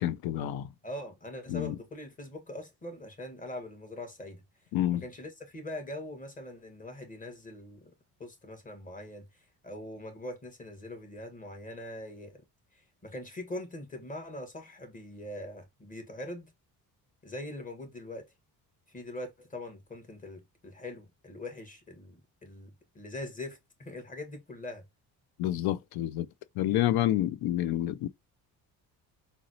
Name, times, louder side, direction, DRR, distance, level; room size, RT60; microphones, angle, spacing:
voice 1, 0.0-0.7 1.5-1.8 4.7-5.0 25.4-26.3 26.6-28.1, left 13 dB, 75° left, 0.5 m, -28 dB
voice 2, 0.8-4.4 4.9-7.9 8.2-9.3 9.6-12.4 13.0-16.5 17.2-18.3 18.9-24.8, left 1 dB, 20° left, 1.1 m, -42 dB
3.9 x 2.0 x 2.6 m
cardioid pair, 110°, 38 cm